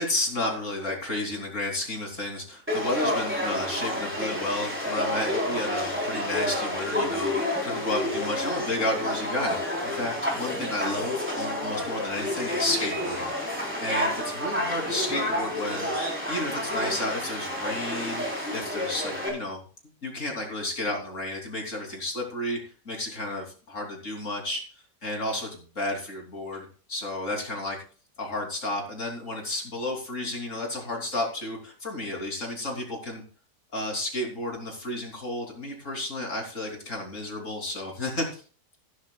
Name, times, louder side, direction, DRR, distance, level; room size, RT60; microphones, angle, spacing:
voice 1, 0.0-19.6 20.0-22.6 22.9-27.8 28.2-33.2 33.7-38.4, left 1 dB, 50° left, 0 dB, 3.6 m, -32 dB
Conversation / Crowd, 2.7-19.3, left 1 dB, 5° right, 3.7 m, -29 dB
16.0 x 11.5 x 2.4 m, 0.39 s
omnidirectional pair, 1.7 m